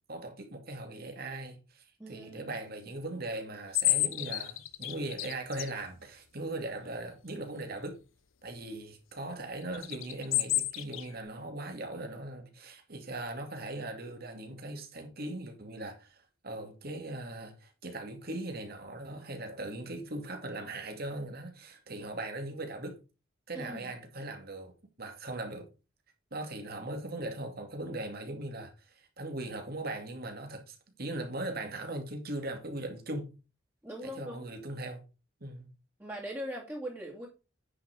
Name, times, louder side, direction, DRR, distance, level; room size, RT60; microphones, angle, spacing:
voice 1, 0.1-8.0 8.4-23.0 23.5-25.7 26.3-33.3 34.0-35.0 35.4-35.7, right 2 dB, 50° right, 2.4 m, -39 dB
voice 2, 2.0-2.7 23.5-23.9 33.8-34.4 36.0-37.3, equal, 10° right, 2.4 m, -41 dB
sound 1, 3.7-5.7 9.7-11.1, left 14 dB, 80° left, 0.9 m, -29 dB
9.6 x 5.8 x 4.7 m
head